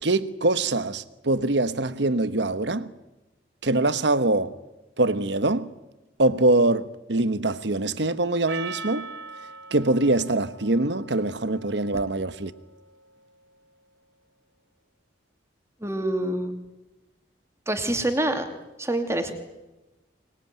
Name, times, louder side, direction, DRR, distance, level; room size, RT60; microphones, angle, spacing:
voice 1, 0.0-2.9 3.6-4.6 5.0-5.7 6.2-9.1 9.7-12.5, right 2 dB, 70° right, 1.2 m, -23 dB
Percussion, 8.5-13.1, right 4 dB, 85° right, 2.5 m, -41 dB
voice 2, 15.8-16.5 17.7-18.5 18.8-19.3, right 1 dB, 15° right, 2.7 m, -26 dB
24.0 x 21.0 x 9.3 m
head